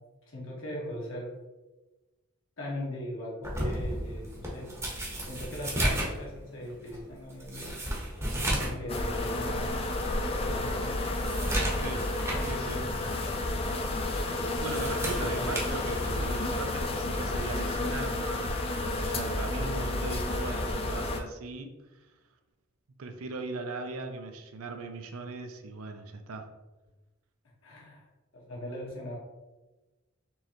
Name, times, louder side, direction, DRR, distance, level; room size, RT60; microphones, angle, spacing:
voice 1, 0.3-1.3 2.6-4.7 5.2-7.8 8.6-10.0 10.4-11.3 12.8-13.5 15.1-15.5 16.0-16.2 27.6-28.0 28.3-29.2, left 1 dB, 65° left, -3 dB, 1.3 m, -40 dB
sound 1, 3.4-8.8 9.2-9.3 9.9-10.0 10.4-12.6 13.0-13.2 14.4-16.4 17.5-17.7, right 1 dB, 15° right, 0.8 m, -34 dB
sound 2, 8.9-21.2, left 2 dB, 25° left, 0.3 m, -31 dB
voice 2, 12.5-12.9 14.6-18.6 19.0-21.7 23.0-26.5, right 3 dB, 85° right, 6 dB, 0.5 m, -39 dB
4.5 x 3.2 x 2.9 m, 1.1 s
head